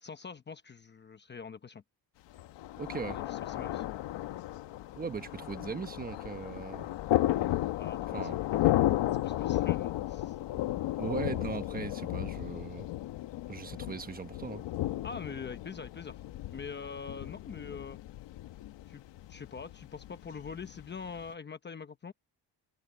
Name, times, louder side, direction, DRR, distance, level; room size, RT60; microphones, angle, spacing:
voice 1, 0.0-1.8 3.1-3.9 7.7-8.3 9.2-10.3 15.0-16.2 16.5-18.0 18.9-19.0 19.3-22.1, left 5 dB, 25° left, 1.0 m, -44 dB
Thunder, 2.3-21.3, left 14 dB, 80° left, 1.3 m, -34 dB
voice 2, 2.8-3.2 4.9-6.9 8.1-8.4 11.0-12.9 13.5-14.6, right 5 dB, 20° right, 1.1 m, -39 dB
cardioid pair, 160°, 42 cm